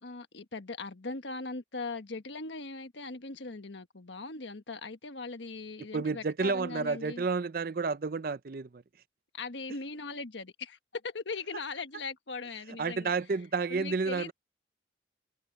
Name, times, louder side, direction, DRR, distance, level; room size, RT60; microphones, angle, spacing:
voice 1, 0.0-7.2 9.3-13.1 13.7-14.3, left 3 dB, 80° left, 1.4 m, -40 dB
voice 2, 5.9-8.8 12.8-14.3, right 4 dB, 50° right, 0.5 m, -31 dB
head